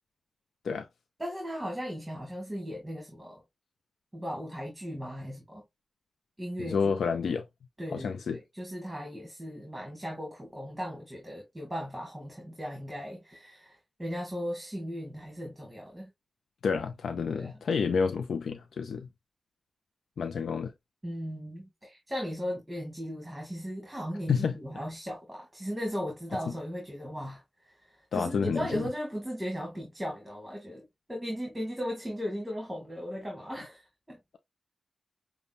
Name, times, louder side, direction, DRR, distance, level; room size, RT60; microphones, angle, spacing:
voice 1, 1.2-3.4 4.1-5.6 6.4-6.9 7.8-16.1 17.3-17.5 21.0-27.7 28.1-34.2, equal, 15° right, 1.9 m, -37 dB
voice 2, 6.6-7.4 7.9-8.4 16.6-19.1 20.2-20.7 24.3-24.5 26.5-26.6 28.1-28.9, left 5 dB, 90° left, 0.4 m, -29 dB
6.7 x 2.2 x 2.5 m
cardioid pair, 65°, 0 cm